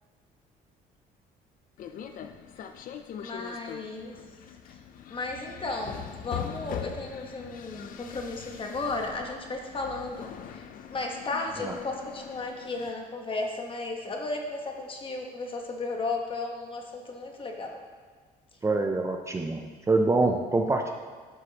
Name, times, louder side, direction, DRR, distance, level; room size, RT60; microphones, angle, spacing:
sound 1, 1.8-12.9, left 9 dB, 55° left, 0.5 m, -42 dB
voice 1, 3.2-4.2 4.7-4.8 5.1-17.8, left 3 dB, 30° left, 2 dB, 1.2 m, -34 dB
voice 2, 18.6-20.9, right 3 dB, 15° right, 3 dB, 0.5 m, -25 dB
10.5 x 6.5 x 2.9 m, 1.5 s
cardioid pair, 110°, 17 cm